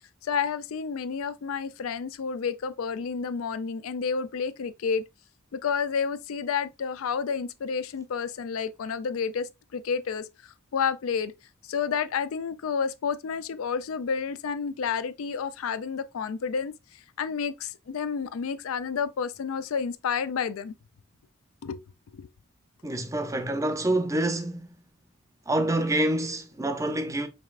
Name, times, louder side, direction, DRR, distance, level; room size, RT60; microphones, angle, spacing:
voice 1, 0.2-5.0 5.5-11.3 11.7-16.7 17.2-20.7 21.6-21.8 22.1-22.3, left 6 dB, 85° left, 0.4 m, -30 dB
voice 2, 22.8-24.8 25.5-27.3, right 1 dB, 15° right, 0.5 m, -27 dB
5.1 x 3.2 x 2.4 m
head